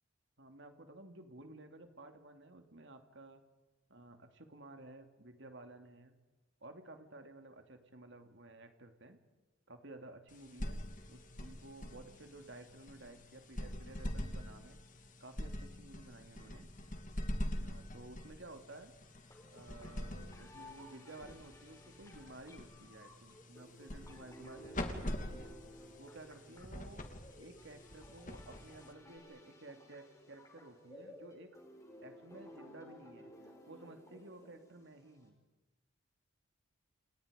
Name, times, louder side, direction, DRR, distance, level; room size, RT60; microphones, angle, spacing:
voice 1, 0.4-3.4 3.9-6.2 6.6-9.2 9.7-10.8 11.1-14.8 15.2-16.7 17.6-31.6 32.0-35.4, right 2 dB, 60° right, 6 dB, 2.7 m, -54 dB
sound 1, 10.3-29.2, left 1 dB, 40° left, 2.9 m, -45 dB
sound 2, 19.3-35.3, equal, 15° left, 5.4 m, -57 dB
30.0 x 29.0 x 5.2 m, 1.2 s
head